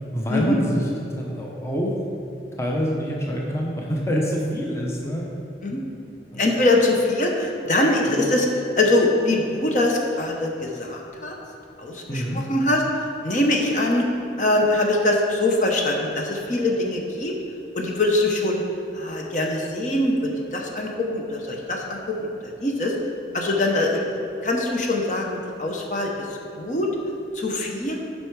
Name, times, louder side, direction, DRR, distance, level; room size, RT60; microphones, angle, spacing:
voice 1, 0.1-0.8 1.2-2.0 2.6-5.3 6.3-6.4 8.1-8.2 12.1-12.4, equal, 15° left, -2 dB, 0.8 m, -26 dB
voice 2, 6.4-8.5 8.8-11.4 11.8-14.1 14.4-17.3 17.7-18.6 18.9-22.9 23.3-26.9 27.3-28.0, left 2 dB, 45° left, 0 dB, 0.8 m, -23 dB
8.2 x 5.5 x 4.7 m, 2.9 s
head